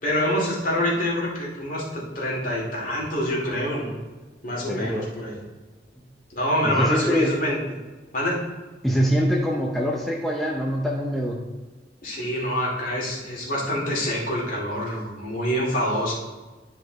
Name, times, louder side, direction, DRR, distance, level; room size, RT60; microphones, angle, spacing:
voice 1, 0.0-4.0 4.4-5.4 6.3-7.6 8.1-8.4 12.0-16.1, left 1 dB, 50° left, -4 dB, 2.6 m, -26 dB
voice 2, 4.7-5.1 6.6-7.4 8.8-11.4, equal, ahead, -2 dB, 0.6 m, -24 dB
11.0 x 4.9 x 4.0 m, 1.3 s
head